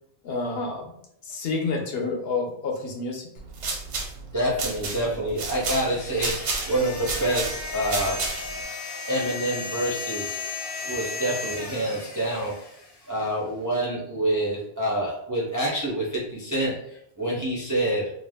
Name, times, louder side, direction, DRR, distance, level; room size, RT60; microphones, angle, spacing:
voice 1, 0.2-0.9 1.2-3.3, left 3 dB, 70° left, 1 dB, 0.8 m, -29 dB
sound 1, 3.4-8.6, right 3 dB, 85° right, 0.9 m, -32 dB
voice 2, 4.3-8.3 9.1-10.4 10.8-12.6 13.1-18.1, right 1 dB, 30° right, -5 dB, 0.3 m, -27 dB
sound 2, 5.8-13.1, left 4 dB, 35° left, 0.4 m, -35 dB
2.4 x 2.1 x 3.4 m, 0.73 s
omnidirectional pair, 1.1 m